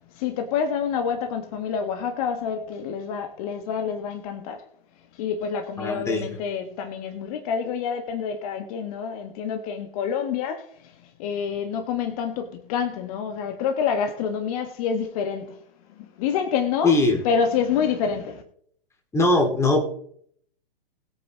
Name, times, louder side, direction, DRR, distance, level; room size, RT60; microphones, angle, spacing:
voice 1, 0.1-4.6 5.2-10.9 11.2-15.6 16.0-16.9 17.2-18.4, left 7 dB, 40° left, 1.6 m, -27 dB
voice 2, 5.8-6.3 16.8-17.2 19.1-19.8, left 2 dB, 10° left, 2.4 m, -20 dB
21.0 x 8.7 x 3.1 m
figure-of-eight pair, 115°, 30 cm